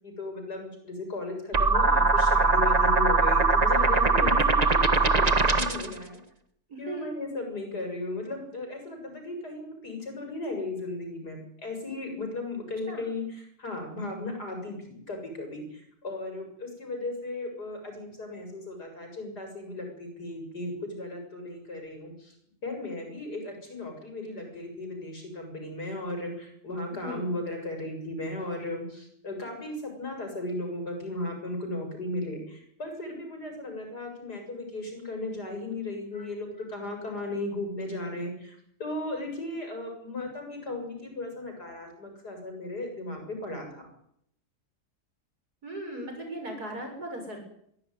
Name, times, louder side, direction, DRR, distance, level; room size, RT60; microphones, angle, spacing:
voice 1, 0.0-6.2 6.8-22.3 22.6-43.9, left 2 dB, 80° left, 4 dB, 7.6 m, -36 dB
sound 1, 1.5-5.9, right 3 dB, 25° right, 1.3 m, -21 dB
voice 2, 6.7-7.1 12.9-13.0 27.0-27.2 45.6-47.4, right 1 dB, 70° right, 4 dB, 7.7 m, -37 dB
23.5 x 16.0 x 9.6 m, 0.71 s
omnidirectional pair, 1.7 m